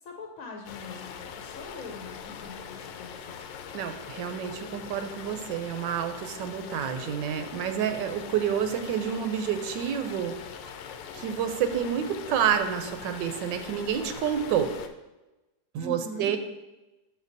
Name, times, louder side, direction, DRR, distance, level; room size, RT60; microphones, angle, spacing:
voice 1, 0.0-3.4 15.8-16.3, left 1 dB, 60° left, 1 dB, 1.0 m, -42 dB
sound 1, 0.6-14.9, left 7 dB, 80° left, 1.2 m, -42 dB
voice 2, 3.7-10.4 10.7-10.8 11.1-14.7 15.7-16.4, right 8 dB, 90° right, 7 dB, 1.3 m, -29 dB
7.3 x 6.2 x 2.7 m, 1.0 s
omnidirectional pair, 2.0 m